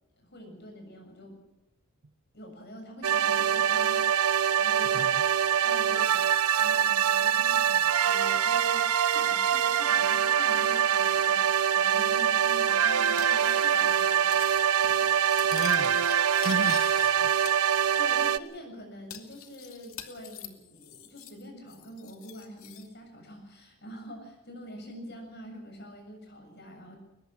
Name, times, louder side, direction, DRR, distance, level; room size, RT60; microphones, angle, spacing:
voice 1, 0.2-1.4 2.3-5.1 5.5-14.4 16.4-16.7 18.0-27.0, equal, 50° left, 4 dB, 7.3 m, -46 dB
sound 1, 3.0-18.4, right 8 dB, 90° right, 0.8 m, -24 dB
voice 2, 4.8-5.2 15.4-17.3, right 2 dB, 70° right, 8 dB, 1.1 m, -36 dB
Cutlery silverware, 13.2-14.0 14.3-14.6 14.8-17.1 17.5-18.2 18.5-18.6 19.1-21.4 21.7-22.9, left 10 dB, 70° left, 2.4 m, -44 dB
22.5 x 21.0 x 6.2 m, 0.99 s
head